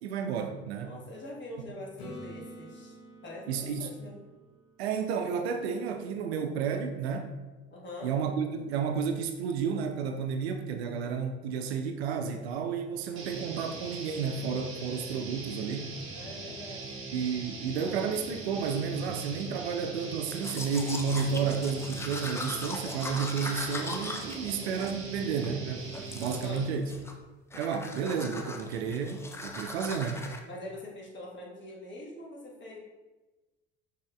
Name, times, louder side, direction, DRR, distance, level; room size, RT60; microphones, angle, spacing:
voice 1, 0.0-0.9 3.5-3.9 4.8-7.3 8.0-15.9 17.1-26.8 27.5-30.2, right 6 dB, 70° right, 0.5 m, -32 dB
voice 2, 0.8-2.9 3.2-4.2 7.7-8.1 16.2-17.0 26.2-26.7 30.4-32.8, left 1 dB, 35° left, 1.3 m, -43 dB
Acoustic guitar / Strum, 2.0-5.7 10.6-10.7, equal, 70° left, 0.8 m, -49 dB
sound 1, 13.1-26.9, right 3 dB, 40° right, 1.0 m, -41 dB
Domestic sounds home sounds, 20.3-25.5 25.9-26.6 26.9-27.2 27.5-30.4, left 2 dB, 10° left, 0.4 m, -40 dB
6.1 x 2.8 x 2.3 m
figure-of-eight pair, 55°, 33 cm